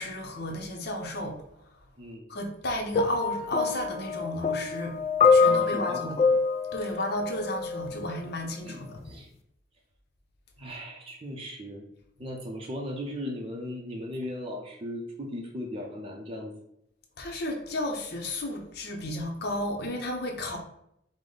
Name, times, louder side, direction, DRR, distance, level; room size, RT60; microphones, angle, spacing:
voice 1, 0.0-1.9 2.3-5.0 5.3-6.1 6.7-9.0 12.2-12.3 17.2-20.6, left 1 dB, 60° left, 2 dB, 0.8 m, -33 dB
sound 1, 2.9-8.1 9.0-9.1, left 4 dB, 35° left, 0.3 m, -25 dB
voice 2, 5.4-6.4 8.6-9.3 10.6-11.9 12.2-16.5, left 1 dB, 30° right, -1 dB, 0.6 m, -37 dB
5.0 x 2.1 x 3.8 m, 0.75 s
head